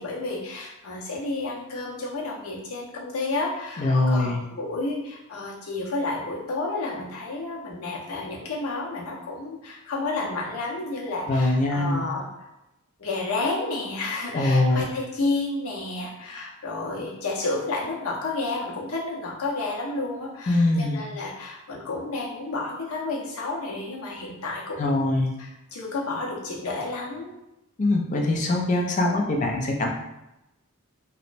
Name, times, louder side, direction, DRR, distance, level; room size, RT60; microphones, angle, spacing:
voice 1, 0.0-12.5 13.0-25.1 25.4-27.3, left 3 dB, 80° left, -2 dB, 0.6 m, -31 dB
voice 2, 3.8-4.4 11.3-12.1 14.3-14.8 20.5-21.0 24.8-25.3 27.8-29.9, left 2 dB, 35° left, 1 dB, 0.4 m, -22 dB
3.0 x 2.0 x 2.5 m, 0.93 s
head